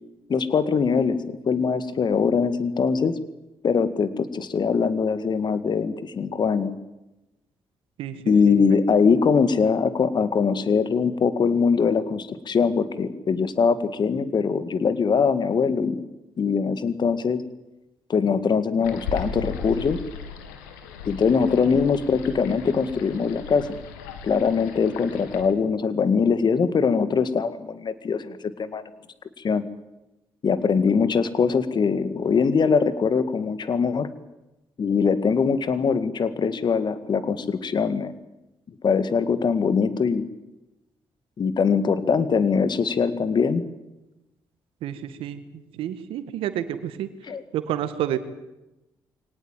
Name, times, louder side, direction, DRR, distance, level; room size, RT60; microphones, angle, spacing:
voice 1, 0.3-3.2 3.6-6.8 8.3-16.0 16.4-17.4 18.1-20.0 21.1-23.7 24.2-28.8 29.4-29.6 30.4-34.1 34.8-38.1 38.8-40.2 41.4-43.6 47.2-47.4, left 5 dB, 50° left, 13 dB, 2.0 m, -22 dB
sound 1, 18.8-25.4, left 6 dB, 90° left, 2.2 m, -37 dB
voice 2, 44.8-45.4 45.8-47.1 47.5-48.2, right 11 dB, 75° right, 12 dB, 1.8 m, -29 dB
23.5 x 18.5 x 9.1 m, 0.98 s
hypercardioid pair, 45°, 9 cm